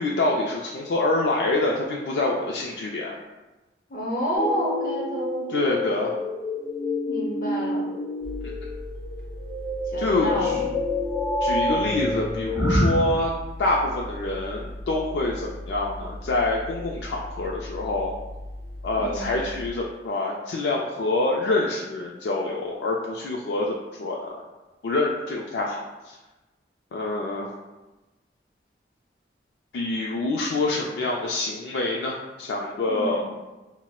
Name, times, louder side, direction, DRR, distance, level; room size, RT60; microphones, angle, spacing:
voice 1, 0.0-3.2 5.5-6.1 10.0-10.6 11.4-13.3 13.6-18.1 18.8-24.4 24.8-26.2 26.9-27.5 29.7-33.2, left 2 dB, 70° left, -2 dB, 0.3 m, -26 dB
voice 2, 3.9-5.5 7.1-7.9 9.9-10.7 19.0-19.3 32.9-33.2, equal, 50° left, -3 dB, 0.7 m, -29 dB
sound 1, 4.3-12.8, left 2 dB, 10° right, 0.4 m, -28 dB
sound 2, 8.2-19.7, left 1 dB, 55° right, 0.5 m, -38 dB
4.1 x 2.0 x 2.2 m, 1.1 s
head